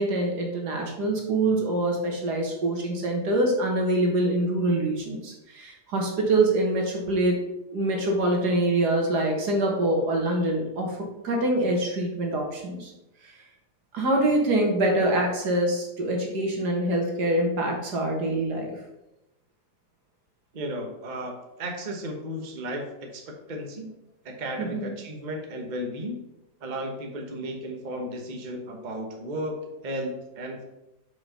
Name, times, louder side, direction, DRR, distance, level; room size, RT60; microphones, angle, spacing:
voice 1, 0.0-7.4 7.7-11.0 11.2-12.9 13.9-18.7 24.6-24.9, right 1 dB, 80° right, 1 dB, 2.1 m, -25 dB
voice 2, 20.5-21.3 21.6-23.9 24.2-26.2 26.6-30.6, equal, 30° right, 2 dB, 1.1 m, -34 dB
5.8 x 5.0 x 5.6 m, 0.92 s
omnidirectional pair, 1.7 m